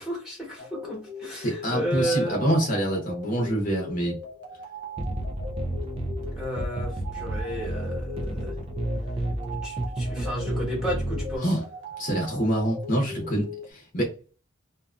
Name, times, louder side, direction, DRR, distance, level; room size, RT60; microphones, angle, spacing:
voice 1, 0.0-2.4 6.3-8.5 9.6-11.6, right 1 dB, 5° right, 1.1 m, -32 dB
sound 1, 0.6-13.7, left 2 dB, 60° right, 0.8 m, -40 dB
voice 2, 1.4-4.2 11.4-11.6 12.0-14.1, right 1 dB, 40° left, 0.7 m, -26 dB
sound 2, 5.0-11.4, right 1 dB, 30° right, 0.4 m, -31 dB
2.5 x 2.4 x 2.3 m
head